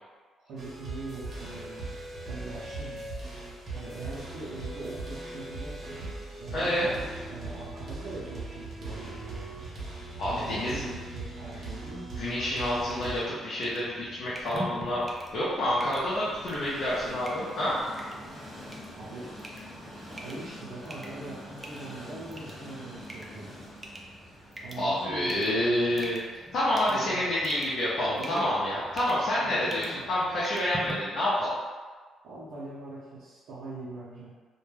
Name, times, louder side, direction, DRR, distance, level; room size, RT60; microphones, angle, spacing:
voice 1, 0.4-1.9 2.3-3.1 3.7-6.1 6.4-9.6 10.3-12.3 18.9-19.3 20.1-23.6 24.6-26.1 26.9-27.2 28.2-28.6 29.3-30.0 32.2-34.3, right 2 dB, 85° right, -10 dB, 0.6 m, -42 dB
sound 1, 0.6-13.2, right 2 dB, 45° right, 0.8 m, -39 dB
voice 2, 6.5-6.9 10.2-10.8 12.2-15.0 15.3-17.8 24.8-31.5, left 1 dB, 65° left, -9 dB, 0.6 m, -28 dB
sound 2, 12.8-30.9, right 1 dB, 20° right, 0.4 m, -46 dB
Train, 13.3-30.9, equal, 30° left, 1.0 m, -48 dB
2.2 x 2.2 x 3.2 m, 1.5 s
cardioid pair, 90°, 0 cm